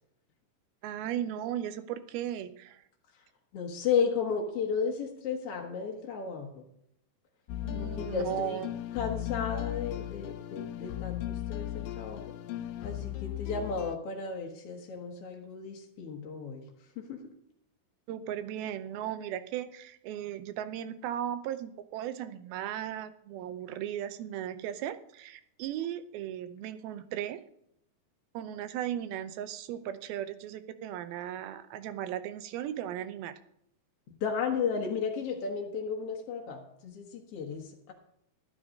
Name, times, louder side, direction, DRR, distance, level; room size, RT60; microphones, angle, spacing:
voice 1, 0.8-2.8 7.6-8.7 18.1-27.4 28.3-33.3, right 11 dB, 85° right, 11 dB, 2.6 m, -36 dB
voice 2, 3.5-6.6 7.7-8.6 8.9-12.2 12.8-16.6 17.0-17.2 34.2-37.9, left 6 dB, 60° left, 0 dB, 1.6 m, -34 dB
sound 1, 7.5-14.0, left 14 dB, 75° left, 2.2 m, -37 dB
12.0 x 10.0 x 5.1 m, 0.75 s
omnidirectional pair, 4.2 m